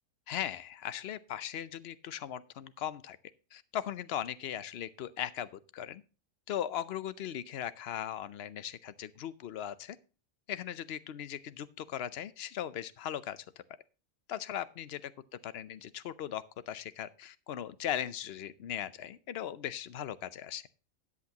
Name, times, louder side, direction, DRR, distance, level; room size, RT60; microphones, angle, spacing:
voice 1, 0.3-3.2 3.5-6.0 6.5-10.0 10.5-13.4 14.3-15.1 15.4-20.6, left 10 dB, 55° left, 16 dB, 0.8 m, -38 dB
13.5 x 8.5 x 2.9 m, 0.34 s
omnidirectional pair, 1.4 m